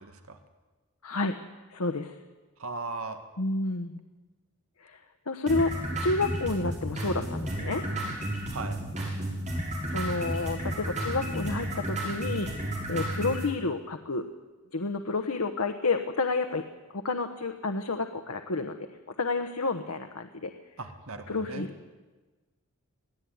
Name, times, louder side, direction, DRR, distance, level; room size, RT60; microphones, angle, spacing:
voice 1, 0.0-0.4 2.6-3.2 8.5-8.8 20.8-21.7, right 3 dB, 70° right, 6 dB, 1.9 m, -37 dB
voice 2, 1.0-1.4 1.7-2.1 3.4-4.0 4.8-5.0 5.3-5.7 6.0-7.8 9.9-12.5 12.9-14.3 14.7-16.6 16.9-20.5 21.3-21.7, left 3 dB, 90° left, 6 dB, 1.2 m, -30 dB
sound 1, 5.5-13.5, right 1 dB, 35° right, 5.9 m, -32 dB
22.0 x 15.5 x 9.5 m, 1.2 s
head